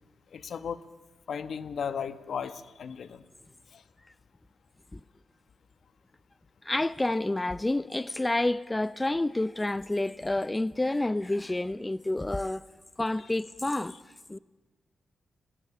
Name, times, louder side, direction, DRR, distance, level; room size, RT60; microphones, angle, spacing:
voice 1, 0.3-0.8 1.3-3.2 3.7-3.8, left 7 dB, 70° left, 1.1 m, -35 dB
voice 2, 6.6-12.7 13.0-13.9 14.3-14.4, left 2 dB, 20° left, 0.7 m, -29 dB
23.5 x 19.5 x 8.7 m
supercardioid pair, 40°, 0 cm